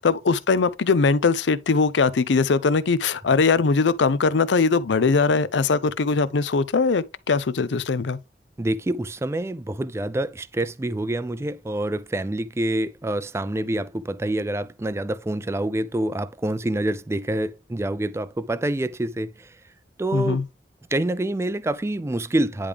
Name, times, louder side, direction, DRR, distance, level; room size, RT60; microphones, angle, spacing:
voice 1, 0.0-8.2 20.1-20.4, left 4 dB, 85° left, 0.5 m, -21 dB
voice 2, 8.6-19.5 20.0-20.4 20.9-22.7, right 1 dB, 15° right, 0.3 m, -27 dB
10.0 x 3.4 x 3.4 m
head